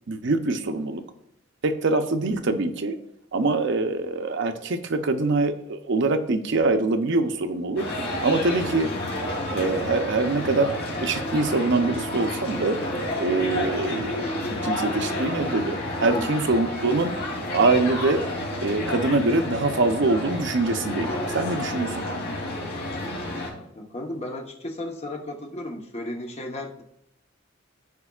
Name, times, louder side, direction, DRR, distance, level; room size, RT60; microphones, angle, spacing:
voice 1, 0.1-1.0 1.6-3.0 3.3-7.9 8.2-8.9 9.5-10.7 11.0-12.8 13.2-17.1 17.5-18.2 18.6-22.0, right 3 dB, 65° right, 8 dB, 0.7 m, -24 dB
sound 1, 7.8-23.5, left 1 dB, 55° left, 3.0 m, -30 dB
voice 2, 23.7-26.8, left 1 dB, 35° left, 2 dB, 1.0 m, -34 dB
14.0 x 5.1 x 2.4 m, 0.77 s
head